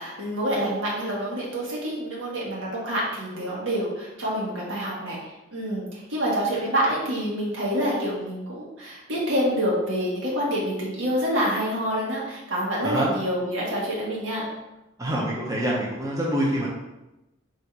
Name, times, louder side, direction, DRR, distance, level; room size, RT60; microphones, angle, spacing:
voice 1, 0.0-14.4, equal, 80° right, -5 dB, 1.5 m, -27 dB
voice 2, 15.0-16.7, right 1 dB, 15° right, -4 dB, 0.6 m, -26 dB
3.9 x 2.5 x 4.5 m, 0.98 s
head